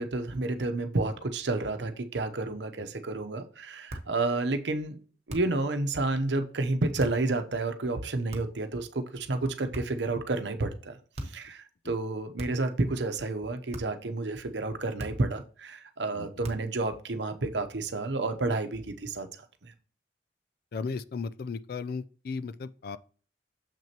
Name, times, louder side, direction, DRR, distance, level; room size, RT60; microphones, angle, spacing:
voice 1, 0.0-5.0 5.3-11.0 11.2-19.3 19.6-19.7, right 2 dB, 80° right, 0.8 m, -30 dB
sound 1, 3.9-4.2 5.3-5.7 7.0-7.3 8.3-8.7 9.7-10.1 11.1-11.5 12.4-12.8 13.7-14.1 15.0-15.4 16.4-16.8, right 1 dB, 40° right, 1.0 m, -40 dB
voice 2, 20.7-23.0, left 4 dB, 55° left, 0.4 m, -36 dB
6.9 x 6.1 x 2.9 m
head